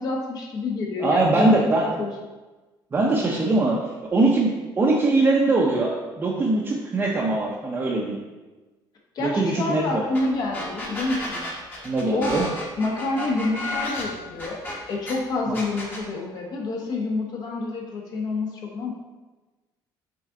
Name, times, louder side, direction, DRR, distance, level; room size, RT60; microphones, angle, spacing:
voice 1, 0.0-1.7 2.0-2.1 9.1-11.4 12.1-12.4 12.8-14.6 14.9-18.9, left 3 dB, 50° left, 0 dB, 1.2 m, -28 dB
voice 2, 1.0-1.9 2.9-3.8 4.1-8.2 9.2-10.0 11.8-12.5 15.5-15.6, right 2 dB, 25° right, -4 dB, 0.7 m, -22 dB
sound 1, 10.1-10.2 10.5-15.1 15.5-16.0, left 2 dB, 20° left, 1.2 m, -32 dB
6.4 x 3.8 x 3.8 m, 1.2 s
cardioid pair, 155°, 8 cm